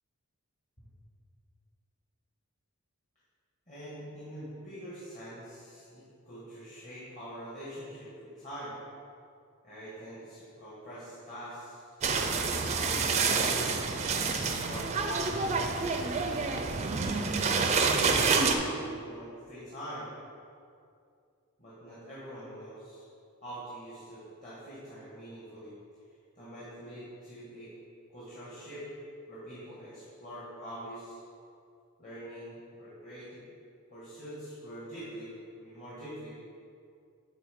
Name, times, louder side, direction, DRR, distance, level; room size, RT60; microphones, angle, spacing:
voice 1, 3.7-8.8 9.6-11.9 12.3-13.6 14.6-16.1 17.7-20.2 21.6-23.0 23.4-25.7 26.3-27.7 28.1-28.9 29.3-31.2 32.0-33.4 33.9-35.3 35.6-36.3, equal, 35° left, -9 dB, 1.6 m, -44 dB
sound 1, 12.0-18.5, right 4 dB, 30° right, 0.4 m, -28 dB
8.5 x 3.3 x 5.1 m, 2.4 s
head